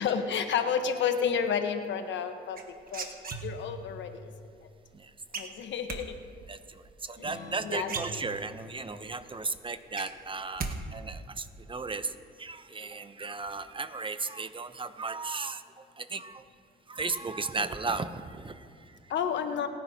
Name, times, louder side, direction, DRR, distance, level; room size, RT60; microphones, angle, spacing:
voice 1, 0.0-2.6 2.9-3.0 3.4-4.1 5.4-6.1 7.6-8.2 19.1-19.7, left 7 dB, 70° left, 7 dB, 1.1 m, -30 dB
sound 1, 2.5-3.9 5.3-6.0 7.4-7.5 7.8-8.7 9.1-9.2 9.5-10.7 11.0-11.5, right 4 dB, 50° right, 1.4 m, -37 dB
voice 2, 6.5-16.4 16.9-19.0, right 4 dB, 25° right, 11 dB, 0.7 m, -36 dB
Strum, 7.2-11.4, left 3 dB, 50° left, 3.5 m, -51 dB
29.0 x 10.0 x 2.8 m, 2.3 s
cardioid pair, 90°, 20 cm